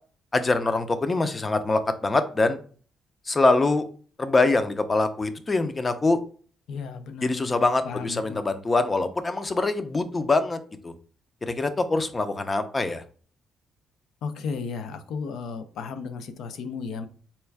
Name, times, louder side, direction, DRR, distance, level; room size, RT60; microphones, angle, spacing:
voice 1, 0.3-2.6 3.3-3.9 4.2-6.2 7.2-10.9 11.4-13.0, left 3 dB, 25° left, 10 dB, 0.5 m, -24 dB
voice 2, 6.7-7.6 7.8-8.4 14.2-17.1, left 5 dB, 80° left, 9 dB, 0.5 m, -34 dB
4.2 x 2.3 x 3.4 m, 0.42 s
cardioid pair, 95°, 0 cm